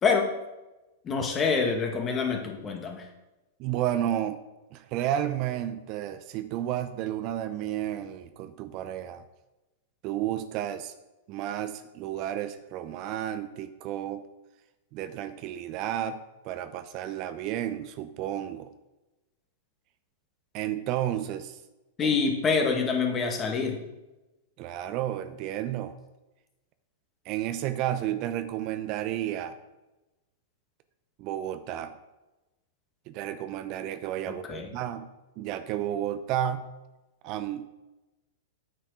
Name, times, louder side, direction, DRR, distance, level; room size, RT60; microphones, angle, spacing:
voice 1, 0.0-0.3 1.0-3.0 22.0-23.8 34.4-34.7, left 5 dB, 25° left, 2 dB, 2.0 m, -26 dB
voice 2, 3.6-4.4 4.7-9.2 10.0-10.9 11.3-14.3 14.9-16.2 16.4-18.7 20.5-21.6 22.0-22.2 24.6-25.9 27.2-29.5 31.2-31.9 33.1-35.1 35.4-36.7 37.2-37.6, right 11 dB, 45° right, 11 dB, 0.7 m, -32 dB
8.8 x 6.9 x 4.9 m, 1.0 s
hypercardioid pair, 105°, 0 cm